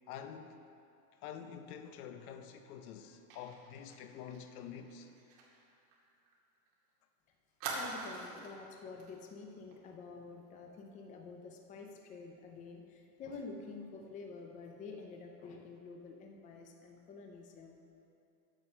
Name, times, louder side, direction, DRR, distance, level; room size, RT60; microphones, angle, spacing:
voice 1, 0.1-0.6 1.2-5.1, left 8 dB, 70° left, 0.9 m, -47 dB
Fire, 3.3-6.7 7.0-7.1 7.6-8.6 9.0-9.2 9.5-9.7, right 3 dB, 45° right, 2.1 m, -45 dB
voice 2, 7.7-17.8, left 4 dB, 15° left, 0.5 m, -48 dB
8.8 x 6.9 x 5.8 m
supercardioid pair, 155°, 46 cm